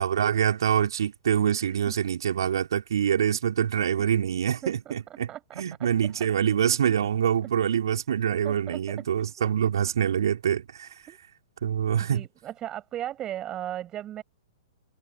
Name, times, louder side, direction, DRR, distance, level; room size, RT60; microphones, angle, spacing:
voice 1, 0.0-5.3 5.5-11.0 11.6-12.3, right 9 dB, 60° right, 3.3 m, -25 dB
voice 2, 4.6-5.9 6.2-6.3 8.4-9.1 9.4-9.5 11.1-11.2 12.1-14.2, right 12 dB, 25° right, 7.2 m, -37 dB
figure-of-eight pair, 110°, 3 cm